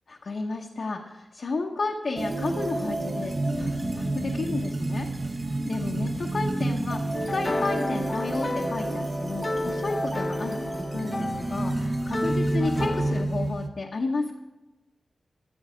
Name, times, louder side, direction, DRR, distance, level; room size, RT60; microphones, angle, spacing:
voice 1, 0.2-5.1 5.3-14.4, left 3 dB, 55° left, 0 dB, 1.0 m, -32 dB
sound 1, 2.2-13.7, right 2 dB, 30° right, 0.9 m, -29 dB
sound 2, 7.1-13.2, left 2 dB, 30° left, 0.5 m, -32 dB
13.5 x 8.1 x 5.0 m, 1.1 s
wide cardioid pair, 125°, 0 cm